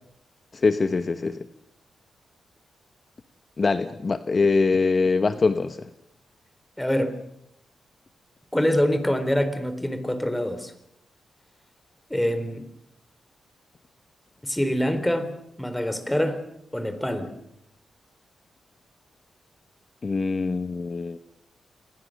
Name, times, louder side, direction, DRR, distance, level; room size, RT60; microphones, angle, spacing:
voice 1, 0.5-1.4 3.6-5.8 20.0-21.2, left 4 dB, 40° left, 10 dB, 1.0 m, -23 dB
voice 2, 6.8-7.2 8.5-10.7 12.1-12.7 14.4-15.3 15.6-16.4 16.7-17.3, equal, 5° left, 10 dB, 3.7 m, -25 dB
28.0 x 20.5 x 6.5 m, 0.79 s
cardioid pair, 80°, 0 cm